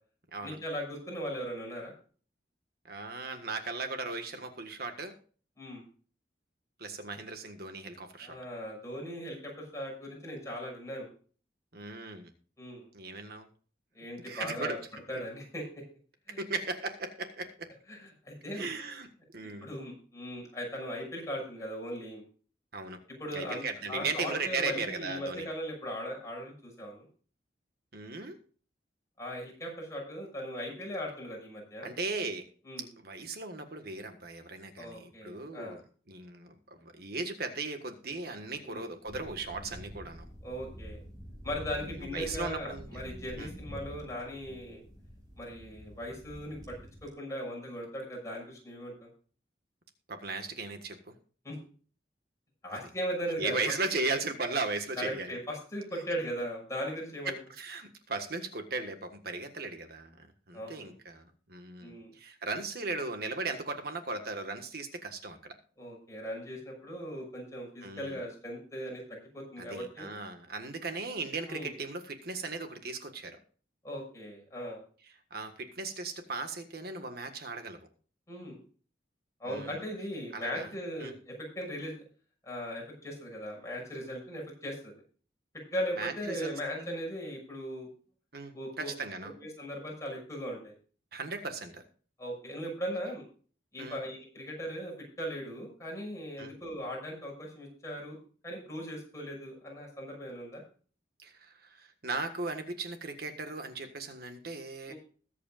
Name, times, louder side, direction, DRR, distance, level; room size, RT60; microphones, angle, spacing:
voice 1, 0.4-1.9 5.6-5.8 8.2-11.1 12.6-12.9 13.9-14.8 15.1-15.8 16.3-16.4 17.9-18.7 19.6-22.2 23.2-23.6 23.9-27.1 29.2-31.9 32.6-32.9 34.8-35.8 38.6-38.9 40.4-41.0 41.4-44.8 45.4-46.7 47.0-49.1 51.4-51.6 52.6-53.5 55.0-57.4 60.5-60.9 61.8-62.1 65.8-70.1 71.5-71.7 73.8-74.8 78.3-78.6 79.4-81.9 82.4-84.9 85.7-87.9 88.5-88.9 89.2-90.7 92.2-93.2 93.7-98.2 98.4-100.6 104.9-105.0, equal, 20° left, -2 dB, 6.2 m, -38 dB
voice 2, 2.8-5.1 6.8-8.4 11.7-12.3 12.9-13.5 14.2-14.9 16.4-17.7 18.5-19.1 19.3-19.7 22.7-23.0 23.3-25.5 27.9-28.4 31.8-32.5 33.0-35.8 36.1-40.2 41.9-43.0 43.4-43.5 50.1-51.2 52.7-52.8 53.4-55.4 57.2-65.5 67.8-68.2 69.6-73.4 75.3-77.8 79.5-79.8 80.3-81.1 86.0-87.0 88.3-89.3 91.1-91.8 93.8-94.0 96.4-96.5 101.2-104.9, right 3 dB, 60° right, 6 dB, 1.6 m, -37 dB
sound 1, 39.0-47.1, equal, 20° right, 5.6 m, -47 dB
21.5 x 8.4 x 2.5 m, 0.41 s
head